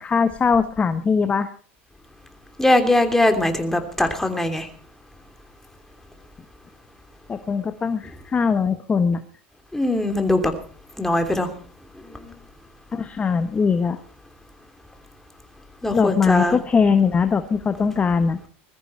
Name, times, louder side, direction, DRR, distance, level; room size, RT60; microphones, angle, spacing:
voice 1, 0.0-1.5 7.3-9.2 12.9-14.0 15.9-18.4, left 5 dB, 25° left, 9 dB, 1.2 m, -21 dB
voice 2, 2.6-4.7 9.7-10.5 11.0-11.5 12.1-12.3 15.8-16.6, left 1 dB, 5° left, 6 dB, 3.1 m, -21 dB
21.0 x 14.0 x 4.4 m, 0.42 s
supercardioid pair, 110°, 6 cm